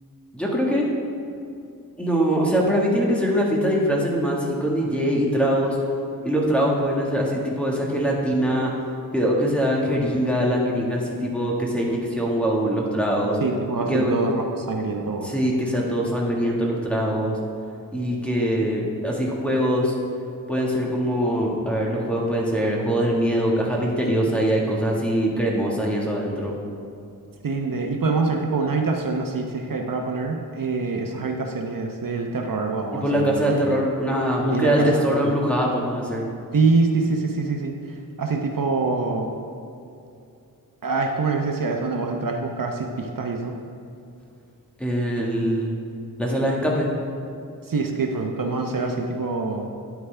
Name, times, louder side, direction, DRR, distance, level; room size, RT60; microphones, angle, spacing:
voice 1, 0.3-0.9 2.0-5.8 6.2-8.7 9.1-13.4 13.8-14.1 15.2-17.4 17.9-19.9 20.5-26.6 32.9-36.3 44.8-45.7 46.2-46.9 48.8-48.9, equal, 5° left, -3 dB, 1.7 m, -23 dB
voice 2, 13.4-15.3 27.4-33.8 34.5-35.3 36.5-39.3 40.8-43.5 47.7-49.7, right 3 dB, 65° right, 2 dB, 0.9 m, -25 dB
9.4 x 9.3 x 3.4 m, 2.6 s
wide cardioid pair, 90°, 36 cm